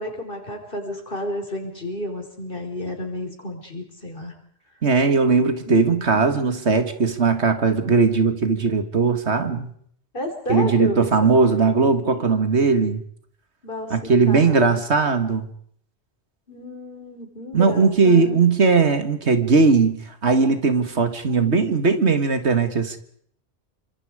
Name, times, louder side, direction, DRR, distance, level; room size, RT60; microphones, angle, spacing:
voice 1, 0.0-4.3 5.7-6.6 10.1-11.7 12.0-12.2 13.6-13.9 14.3-14.6 16.5-18.4 21.3-21.7, left 1 dB, 50° left, 5.1 m, -32 dB
voice 2, 4.8-9.7 10.5-13.0 13.9-15.5 17.5-20.0 20.2-23.0, right 4 dB, 70° right, 2.2 m, -19 dB
28.5 x 25.0 x 5.0 m
omnidirectional pair, 1.2 m